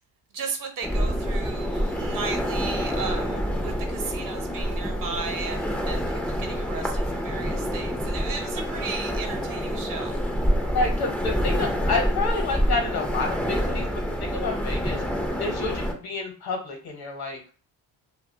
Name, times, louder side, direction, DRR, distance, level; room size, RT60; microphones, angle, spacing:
voice 1, 0.3-10.2, right 5 dB, 45° right, 4 dB, 0.8 m, -35 dB
sound 1, 0.8-15.9, equal, 5° left, 0.5 m, -27 dB
voice 2, 10.7-13.9 14.2-15.0 15.4-17.4, left 3 dB, 55° left, 3 dB, 1.0 m, -29 dB
2.8 x 2.4 x 2.7 m, 0.39 s
cardioid pair, 100°, 46 cm